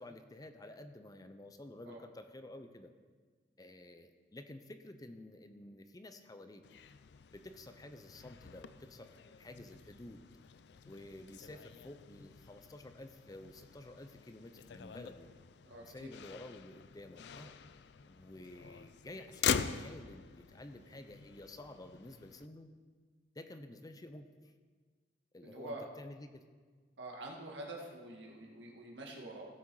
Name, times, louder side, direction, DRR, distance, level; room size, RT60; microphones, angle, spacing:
voice 1, 0.0-2.9 3.6-6.6 7.3-10.2 10.9-15.3 15.8-17.5 18.1-22.7 23.4-24.5 25.3-26.4, left 1 dB, 20° left, 8 dB, 0.6 m, -51 dB
Motor vehicle (road), 6.6-22.5, left 7 dB, 65° left, 0.4 m, -43 dB
voice 2, 15.6-16.1 25.4-25.8 27.0-29.5, right 1 dB, 80° right, 0 dB, 1.8 m, -46 dB
16.0 x 6.1 x 4.8 m, 1.5 s
head